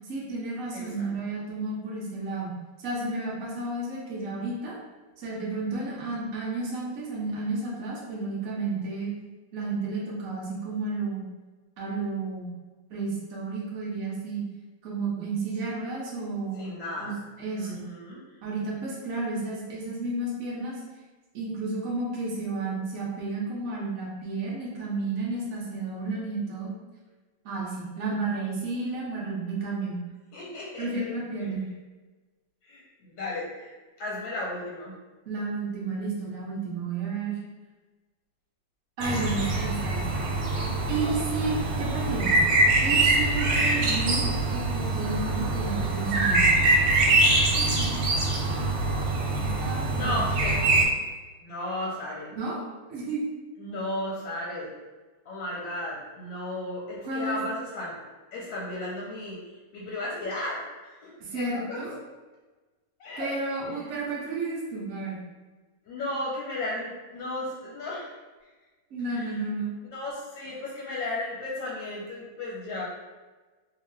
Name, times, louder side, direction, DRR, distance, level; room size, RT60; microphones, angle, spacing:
voice 1, 0.1-2.5 2.8-4.8 5.2-9.1 9.5-11.2 11.8-12.5 12.9-14.4 14.8-16.6 17.0-17.1 17.4-17.7 18.4-20.8 21.3-26.7 27.4-30.0 30.8-31.6 35.3-37.4 39.0-40.3 40.9-42.4 42.8-46.5 47.6-48.0 48.4-48.6 49.3-50.2 52.3-52.6 52.9-53.2 57.0-57.4 61.2-61.9 63.2-65.2 68.9-69.7, right 3 dB, 55° right, -4 dB, 0.9 m, -32 dB
voice 2, 0.7-1.1 16.5-17.1 17.5-18.2 30.3-31.0 31.4-31.5 32.6-33.7 34.0-35.0 49.9-50.6 51.4-52.3 53.6-54.7 55.2-58.0 58.3-61.8 63.0-63.4 63.7-63.8 65.8-68.1 69.1-69.4 69.9-72.8, left 1 dB, 70° left, -5 dB, 1.3 m, -34 dB
sound 1, 39.0-50.9, right 2 dB, 85° right, 1.6 m, -24 dB
3.1 x 2.8 x 3.1 m, 1.3 s
omnidirectional pair, 2.4 m